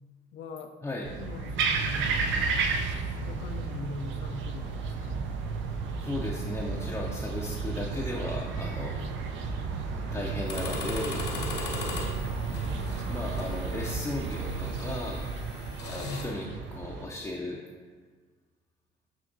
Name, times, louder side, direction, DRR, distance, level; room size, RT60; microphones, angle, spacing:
voice 1, 0.3-0.7 1.2-2.1 3.2-5.3 11.3-11.6 16.0-16.3, left 3 dB, 70° left, 6 dB, 0.4 m, -40 dB
sound 1, 1.0-17.1, right 4 dB, 75° right, 0.4 m, -32 dB
voice 2, 6.0-9.0 10.1-11.3 13.0-15.3 15.9-17.6, left 1 dB, 15° left, -3 dB, 0.4 m, -35 dB
sound 2, 10.4-16.2, left 3 dB, 55° left, 0.9 m, -39 dB
5.9 x 2.9 x 2.6 m, 1.5 s
cardioid pair, 90°, 20 cm